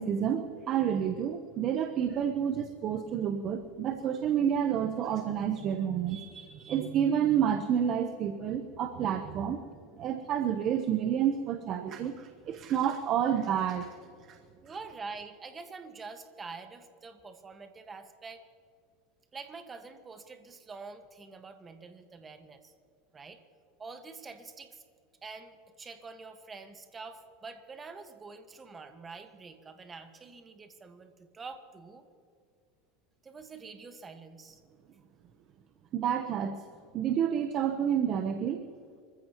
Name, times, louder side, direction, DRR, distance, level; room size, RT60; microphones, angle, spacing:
voice 1, 0.0-9.6 9.9-14.0 14.3-14.4 35.9-36.6 36.9-38.7, right 9 dB, 45° right, 7 dB, 1.0 m, -29 dB
voice 2, 14.6-18.4 19.3-22.7 23.1-23.4 23.8-24.8 25.2-32.1 33.2-34.6, right 4 dB, 20° right, 7 dB, 1.6 m, -46 dB
26.5 x 15.0 x 3.1 m, 2.3 s
supercardioid pair, 120°, 0 cm